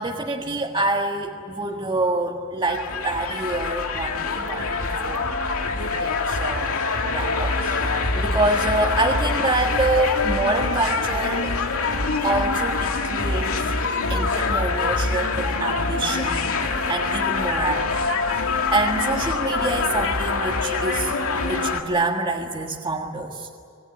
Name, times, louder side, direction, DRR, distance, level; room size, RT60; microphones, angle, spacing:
voice 1, 0.0-5.4 6.0-6.8 7.1-11.5 12.2-13.7 14.1-16.6 16.9-21.2 21.4-23.5, right 2 dB, 25° right, 0 dB, 1.6 m, -26 dB
sound 1, 2.7-21.8, left 3 dB, 85° left, 2.4 m, -25 dB
26.5 x 20.5 x 9.8 m, 2.5 s
head